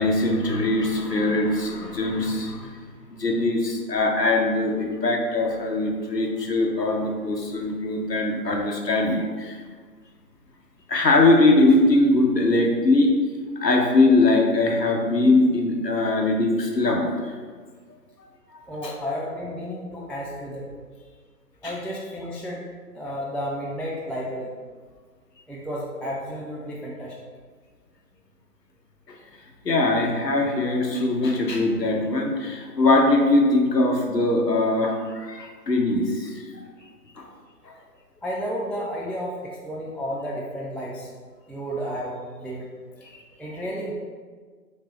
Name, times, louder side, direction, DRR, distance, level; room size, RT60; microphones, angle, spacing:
voice 1, 0.0-2.7 3.1-9.6 10.9-13.1 13.6-17.1 18.8-18.9 21.6-21.7 29.6-36.3 37.6-37.7, left 2 dB, 80° left, 1 dB, 1.0 m, -21 dB
voice 2, 18.7-20.7 21.6-22.6 22.9-24.5 25.5-27.2 38.2-41.1 41.5-42.7 43.4-43.9, equal, 5° left, -4 dB, 0.3 m, -32 dB
3.3 x 3.3 x 4.3 m, 1.5 s
figure-of-eight pair, 165°, 48 cm